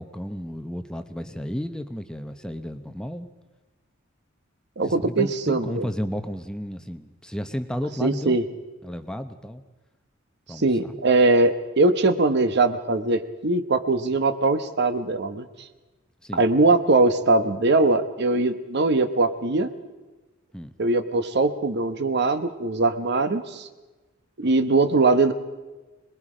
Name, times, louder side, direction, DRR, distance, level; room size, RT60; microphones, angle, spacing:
voice 1, 0.0-3.3 4.8-8.4 8.8-9.6 10.5-11.0 16.2-16.5 20.5-20.7, equal, 5° left, 8 dB, 0.8 m, -33 dB
voice 2, 4.8-5.8 8.0-8.4 10.6-15.5 16.3-19.7 20.8-23.7 24.4-25.3, right 3 dB, 55° right, 10 dB, 1.1 m, -21 dB
26.0 x 20.5 x 5.0 m, 1.2 s
head